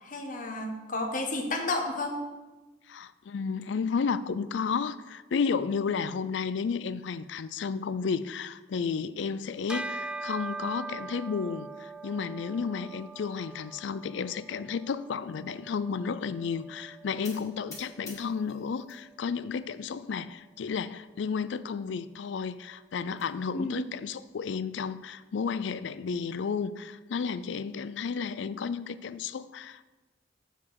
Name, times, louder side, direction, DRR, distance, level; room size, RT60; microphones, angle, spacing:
voice 1, 0.0-2.2 23.5-23.8, left 2 dB, 45° left, 3 dB, 1.3 m, -32 dB
voice 2, 2.9-29.8, left 5 dB, 70° left, 15 dB, 0.4 m, -32 dB
Bell, 9.7-19.4, right 3 dB, 5° right, 0.4 m, -43 dB
sound 1, 17.2-19.0 19.4-20.0 20.6-20.7 21.0-21.1 21.4-21.5 22.7-23.3, left 3 dB, 20° left, 2.1 m, -49 dB
7.1 x 5.6 x 6.3 m, 1.2 s
head